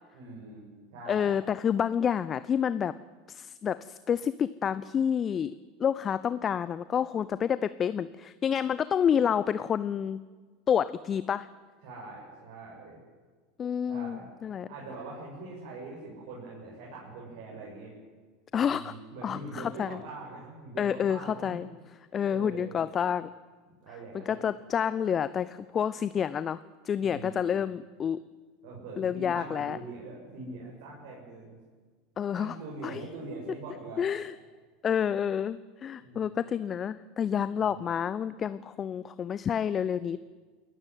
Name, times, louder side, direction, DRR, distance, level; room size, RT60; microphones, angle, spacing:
voice 1, 0.1-1.4 11.8-13.0 13.9-14.3 14.7-17.9 18.6-21.6 22.2-22.8 23.8-24.4 27.0-27.6 28.6-31.6 32.3-34.1 36.0-36.4 37.5-37.7, right 3 dB, 60° right, -4 dB, 7.2 m, -43 dB
voice 2, 1.1-2.9 3.3-5.5 5.8-10.2 10.7-11.5 13.6-14.7 18.5-18.9 19.2-20.0 20.8-21.7 22.1-23.3 24.3-28.2 29.0-29.8 32.2-32.6 32.8-33.0 34.0-34.3 34.8-40.2, left 8 dB, 30° left, 16 dB, 0.7 m, -29 dB
28.0 x 14.5 x 9.3 m, 1.4 s
figure-of-eight pair, 80°, 0 cm